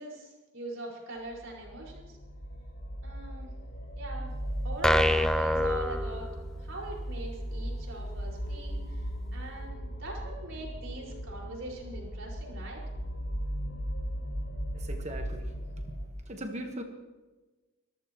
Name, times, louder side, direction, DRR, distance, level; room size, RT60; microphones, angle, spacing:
voice 1, 0.0-2.2 3.0-3.5 4.0-4.3 4.6-6.3 6.6-12.8, right 2 dB, 65° right, -2 dB, 5.3 m, -42 dB
sound 1, 1.3-16.1, equal, 65° left, 5.3 m, -37 dB
sound 2, 4.8-6.8, left 1 dB, 5° left, 0.4 m, -26 dB
voice 2, 14.7-15.5 16.3-16.8, right 1 dB, 35° right, 4 dB, 1.4 m, -39 dB
25.0 x 14.5 x 3.1 m, 1.2 s
head